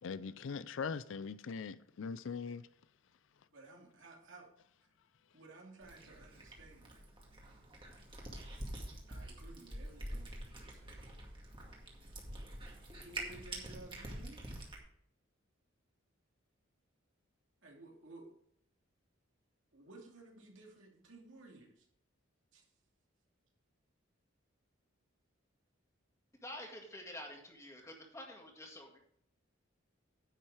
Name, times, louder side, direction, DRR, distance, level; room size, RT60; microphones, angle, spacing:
voice 1, 0.0-2.7, left 5 dB, 70° left, 0.4 m, -41 dB
voice 2, 3.5-4.5 4.8-4.9 5.3-7.0 9.1-11.1 12.9-14.4 17.6-18.4 19.7-21.9 22.5-22.7, right 2 dB, 65° right, 2.7 m, -56 dB
Cat, 5.8-14.8, right 1 dB, 25° right, 2.1 m, -46 dB
voice 3, 26.4-29.0, left 1 dB, 15° left, 1.9 m, -48 dB
10.0 x 7.3 x 4.9 m
head